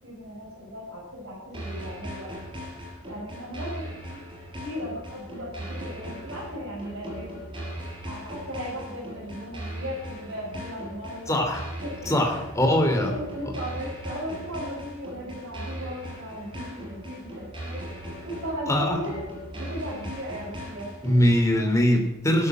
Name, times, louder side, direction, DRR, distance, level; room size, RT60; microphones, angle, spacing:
voice 1, 0.0-2.3 3.0-3.8 4.1-4.2 4.6-7.3 8.0-11.4 11.8-12.2 12.7-17.8 18.2-19.2 19.5-20.9 21.5-21.8, equal, 60° right, -8 dB, 6.9 m, -36 dB
sound 1, 1.5-21.5, equal, 25° right, 5.3 m, -38 dB
voice 2, 11.3-11.6 12.1-13.1 18.7-19.0 21.0-22.5, equal, 15° left, 3 dB, 3.0 m, -22 dB
16.0 x 13.0 x 6.3 m, 0.91 s
head